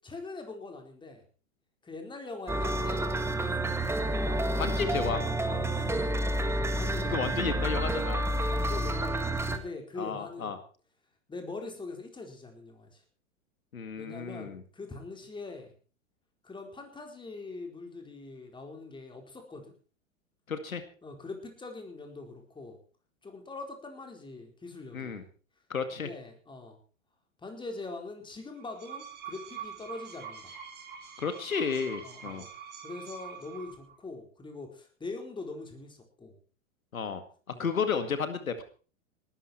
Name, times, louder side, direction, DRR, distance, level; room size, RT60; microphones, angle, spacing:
voice 1, 0.0-1.2 1.8-3.7 5.5-6.3 6.8-7.2 8.5-10.6 11.3-13.0 14.0-15.7 16.4-19.7 21.0-22.8 23.2-25.3 25.9-26.8 27.4-30.5 32.0-32.5 32.8-36.4 37.5-37.7, left 3 dB, 10° left, 4 dB, 4.5 m, -43 dB
sound 1, 2.5-9.6, right 1 dB, 5° right, 1.9 m, -29 dB
voice 2, 4.6-5.3 7.1-8.3 10.0-10.6 13.7-14.6 20.5-20.8 24.9-25.2 25.7-26.1 31.2-32.4 36.9-37.2 37.5-38.6, left 6 dB, 90° left, 9 dB, 2.2 m, -32 dB
sound 2, 28.6-33.9, right 7 dB, 25° right, 7.6 m, -45 dB
19.0 x 13.0 x 4.5 m, 0.39 s
hypercardioid pair, 110°, 40 cm